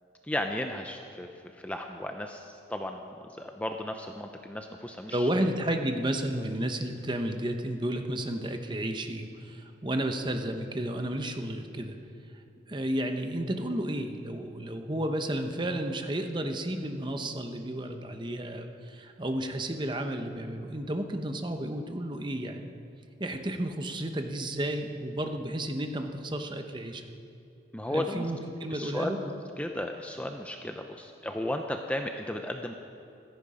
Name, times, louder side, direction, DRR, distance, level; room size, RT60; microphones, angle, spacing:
voice 1, 0.2-1.3 1.6-5.3 6.4-6.5 27.7-28.3 28.7-29.3 29.6-32.7, left 1 dB, 10° left, 4 dB, 0.6 m, -34 dB
voice 2, 5.1-12.0 12.7-22.7 23.2-27.1 27.9-29.2, right 1 dB, 25° right, 5 dB, 0.9 m, -32 dB
16.0 x 14.0 x 5.0 m, 2.6 s
head